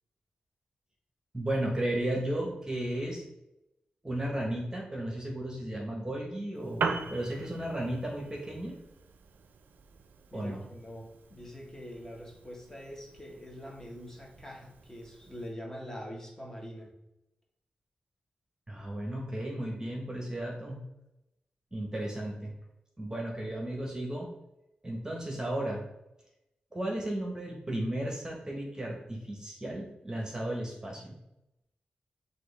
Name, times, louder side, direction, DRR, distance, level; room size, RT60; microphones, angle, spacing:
voice 1, 1.3-3.2 4.0-8.7 10.3-10.6 18.7-20.8 21.7-22.5 23.0-24.3 24.8-25.8 26.7-31.1, right 1 dB, 20° right, -2 dB, 1.2 m, -34 dB
Piano, 6.5-15.5, right 5 dB, 80° right, 0.4 m, -41 dB
voice 2, 10.3-16.9, equal, 15° left, -2 dB, 1.4 m, -44 dB
5.9 x 2.7 x 3.4 m, 0.91 s
cardioid pair, 55°, 3 cm